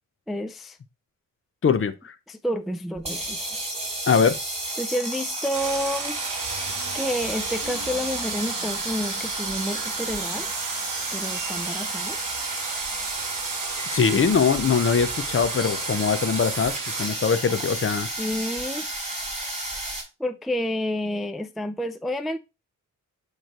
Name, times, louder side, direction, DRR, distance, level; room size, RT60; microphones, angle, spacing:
voice 1, 0.3-0.8 2.3-3.7 4.8-6.2 6.9-10.5 11.1-12.2 18.2-18.9 20.2-22.4, equal, ahead, 0.3 m, -29 dB
voice 2, 1.6-2.1 4.1-4.4 13.9-18.1, left 6 dB, 40° left, 0.6 m, -22 dB
sound 1, 3.0-20.0, right 2 dB, 20° right, 3.5 m, -32 dB
sound 2, 5.5-17.1, right 6 dB, 70° right, 1.3 m, -34 dB
9.0 x 3.2 x 4.4 m
wide cardioid pair, 140°, 33 cm